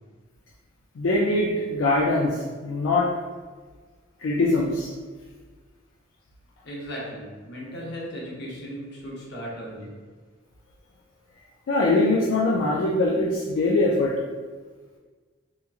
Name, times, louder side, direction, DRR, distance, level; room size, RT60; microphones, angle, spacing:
voice 1, 1.0-3.1 4.2-4.9 11.7-14.1, left 2 dB, 75° left, -4 dB, 0.3 m, -22 dB
voice 2, 6.6-9.9, equal, 60° left, -4 dB, 0.7 m, -36 dB
2.9 x 2.4 x 2.4 m, 1.4 s
head